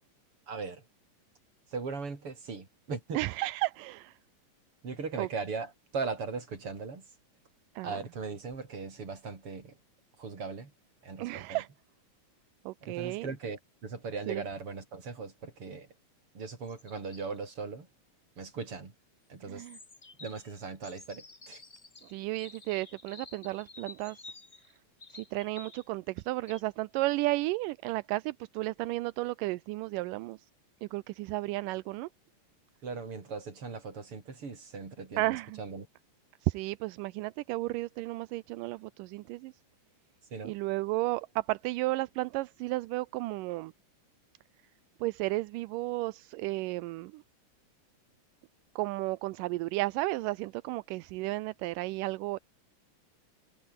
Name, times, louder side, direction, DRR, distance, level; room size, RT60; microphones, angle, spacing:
voice 1, 0.5-0.8 1.7-3.3 4.8-7.1 7.8-9.8 10.2-10.7 11.0-11.6 12.8-15.9 16.3-17.9 18.4-18.9 19.3-19.7 20.2-21.6 32.8-35.9 40.3-40.5, right 4 dB, 40° right, 5.2 m, -39 dB
voice 2, 3.1-4.1 5.2-5.3 7.8-8.0 11.2-11.7 12.7-13.3 14.3-14.4 19.5-19.8 22.1-24.2 25.1-30.4 30.8-32.1 35.2-35.6 36.4-39.5 40.4-43.7 45.0-47.2 48.8-52.4, right 20 dB, 85° right, 2.2 m, -33 dB
sound 1, 16.7-17.4 19.6-25.9 26.2-26.6, left 3 dB, 25° left, 1.0 m, -52 dB
omnidirectional pair, 3.9 m